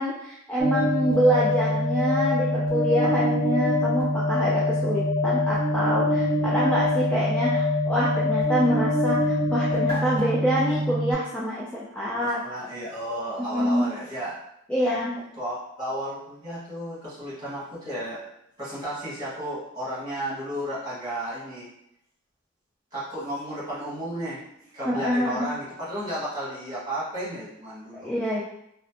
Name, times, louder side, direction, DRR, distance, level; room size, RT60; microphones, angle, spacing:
voice 1, 0.0-12.4 13.5-13.9 14.7-15.1 24.8-25.5 27.9-28.4, equal, 5° left, -6 dB, 0.3 m, -26 dB
sound 1, 0.6-11.1, left 1 dB, 25° left, 1.4 m, -24 dB
voice 2, 12.1-14.3 15.4-18.2 18.6-21.7 22.9-24.4 24.7-28.1, equal, 20° right, -10 dB, 1.5 m, -33 dB
3.0 x 2.0 x 2.8 m, 0.77 s
head